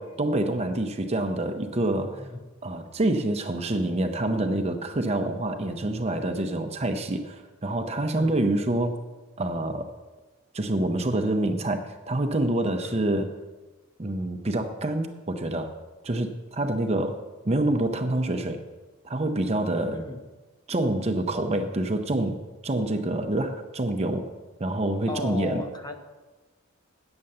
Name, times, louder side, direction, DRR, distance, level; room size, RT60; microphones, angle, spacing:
voice 1, 0.0-2.3 2.6-9.0 9.4-9.9 10.5-13.3 14.0-15.8 16.0-18.6 19.0-20.0 20.7-22.4 22.6-24.3 24.6-25.6, right 1 dB, 30° right, 6 dB, 0.6 m, -27 dB
voice 2, 2.1-2.4 8.1-8.3 12.8-13.0 19.9-20.2 25.1-26.0, left 2 dB, 20° left, 4 dB, 0.8 m, -35 dB
8.8 x 7.0 x 7.7 m, 1.2 s
head